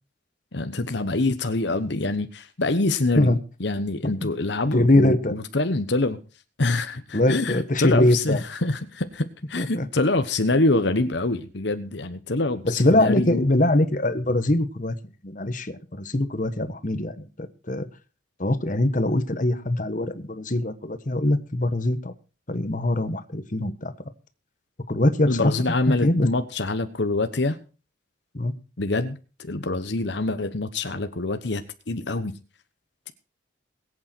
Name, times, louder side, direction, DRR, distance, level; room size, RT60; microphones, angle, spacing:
voice 1, 0.5-3.3 3.6-6.2 6.6-13.5 25.3-27.6 28.8-32.3, left 2 dB, 65° left, 10 dB, 1.1 m, -25 dB
voice 2, 4.7-5.3 7.1-8.4 9.6-9.9 12.6-14.9 15.2-15.8 16.0-17.3 17.7-17.9 18.4-22.1 22.5-23.9 24.9-25.5 25.9-26.3 28.3-28.5, left 1 dB, 40° left, 10 dB, 1.3 m, -22 dB
21.5 x 8.6 x 4.5 m, 0.35 s
head